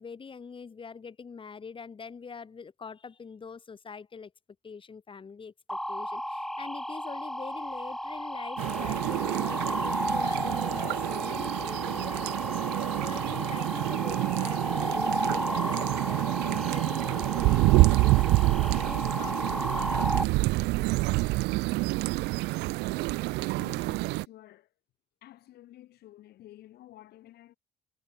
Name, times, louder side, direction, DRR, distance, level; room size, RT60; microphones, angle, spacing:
voice 1, 0.0-4.3 4.6-12.7 13.0-19.9, left 5 dB, 30° left, 5.8 m, -44 dB
sound 1, 5.7-20.2, equal, ahead, 2.0 m, -33 dB
sound 2, 8.6-24.3, right 22 dB, 85° right, 0.4 m, -27 dB
voice 2, 23.6-24.7 25.2-27.6, left 14 dB, 70° left, 6.6 m, -51 dB
cardioid pair, 110°, 17 cm